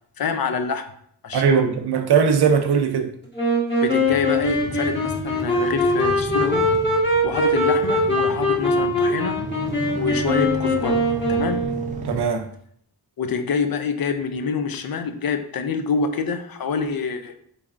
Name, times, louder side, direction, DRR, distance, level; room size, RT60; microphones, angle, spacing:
voice 1, 0.2-0.9 1.2-1.8 3.8-6.7 7.2-9.4 10.0-11.6 13.2-17.3, left 5 dB, 65° left, 0.5 m, -26 dB
voice 2, 1.3-3.1 12.0-12.5, right 6 dB, 85° right, 0.5 m, -19 dB
Wind instrument woodwind instrument, 3.3-12.1, left 1 dB, 30° left, 1.3 m, -22 dB
sound 1, 4.0-12.2, right 1 dB, 20° right, 0.5 m, -34 dB
3.9 x 3.4 x 2.4 m
wide cardioid pair, 100°, 39 cm